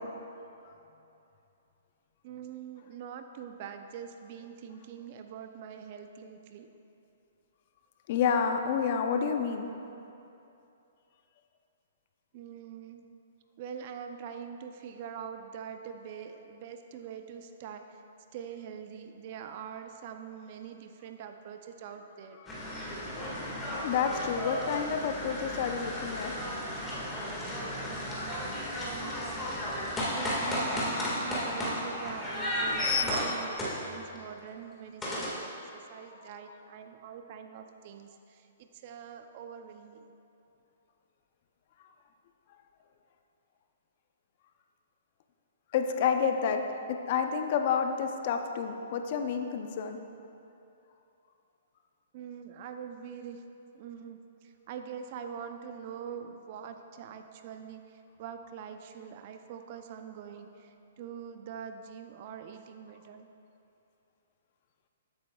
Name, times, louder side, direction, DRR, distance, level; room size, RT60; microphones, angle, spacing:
voice 1, 2.2-6.7 12.3-13.1 13.6-18.0 18.3-22.4 28.7-29.2 30.1-40.1 52.1-53.4 53.7-63.3, right 8 dB, 45° right, 7 dB, 0.6 m, -44 dB
voice 2, 8.1-9.7 22.4-22.5 23.4-26.3 27.8-28.3 36.2-36.3 45.7-46.6 46.9-50.0, left 6 dB, 50° left, 6 dB, 0.6 m, -30 dB
sound 1, 22.5-34.2 35.0-35.3, left 1 dB, 15° left, 1.8 m, -33 dB
12.5 x 8.5 x 2.3 m, 2.8 s
hypercardioid pair, 140°, 0 cm